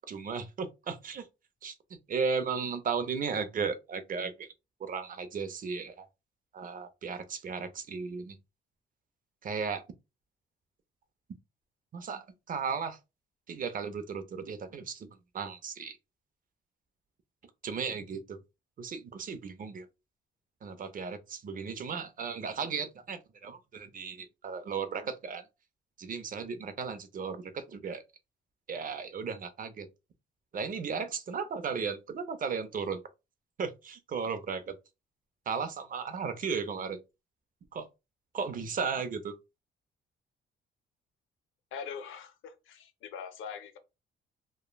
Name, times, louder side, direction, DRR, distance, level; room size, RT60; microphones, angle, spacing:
voice 1, 0.1-1.3 1.6-1.8 2.1-4.5 4.8-6.1 6.5-8.4 9.4-9.8 11.9-13.0 13.5-16.0 17.6-18.4 18.8-19.9 20.6-25.5 26.0-28.0 28.7-29.9 30.5-33.0 33.6-34.7 35.5-37.0 37.7-37.9 38.3-39.3, right 5 dB, 45° right, 0.5 m, -35 dB
voice 2, 41.7-43.8, left 6 dB, 85° left, 0.6 m, -42 dB
3.0 x 2.2 x 2.2 m
cardioid pair, 90°, 20 cm